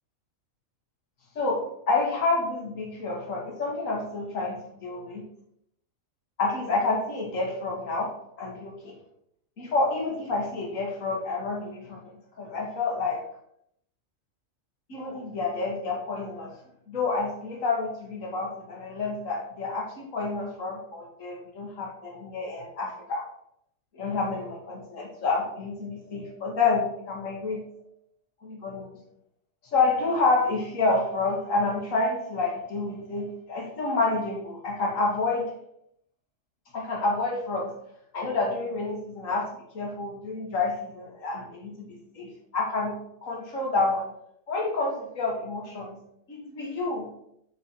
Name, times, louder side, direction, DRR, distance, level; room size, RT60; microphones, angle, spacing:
voice 1, 1.4-5.2 6.4-9.0 9.6-13.2 14.9-16.6 16.9-23.3 23.9-27.7 28.4-29.0 29.6-35.6 36.7-37.7 38.1-39.5 39.7-43.0 43.2-44.1 44.5-46.0 46.3-47.1, left 3 dB, 75° left, 0 dB, 2.0 m, -29 dB
9.2 x 4.4 x 4.2 m, 0.74 s
omnidirectional pair, 1.4 m